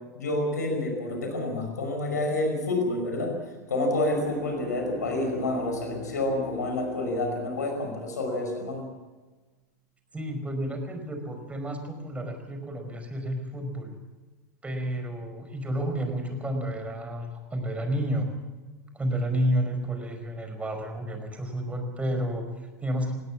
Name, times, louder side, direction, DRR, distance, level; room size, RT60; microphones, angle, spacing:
voice 1, 0.1-3.3 3.7-8.8, left 2 dB, 85° left, 3 dB, 5.3 m, -28 dB
Bowed string instrument, 3.6-8.3, left 3 dB, 60° right, 5.7 m, -42 dB
voice 2, 10.1-14.0 14.6-18.3 18.9-23.1, equal, 15° right, 5 dB, 5.3 m, -31 dB
19.5 x 18.0 x 7.4 m, 1.3 s
hypercardioid pair, 95°, 9 cm